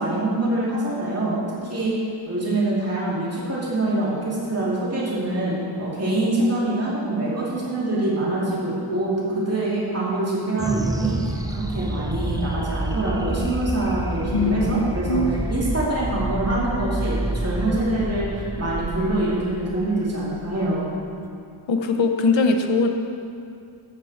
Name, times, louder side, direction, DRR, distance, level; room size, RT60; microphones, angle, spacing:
voice 1, 0.0-2.0 2.3-5.5 5.8-15.2 15.5-20.9, right 2 dB, 30° right, -7 dB, 2.7 m, -25 dB
sound 1, 10.6-21.3, right 1 dB, 10° right, 0.5 m, -29 dB
voice 2, 14.3-15.3 21.7-22.9, left 3 dB, 65° left, 5 dB, 0.9 m, -21 dB
13.0 x 7.0 x 4.3 m, 2.5 s
wide cardioid pair, 90°, 50 cm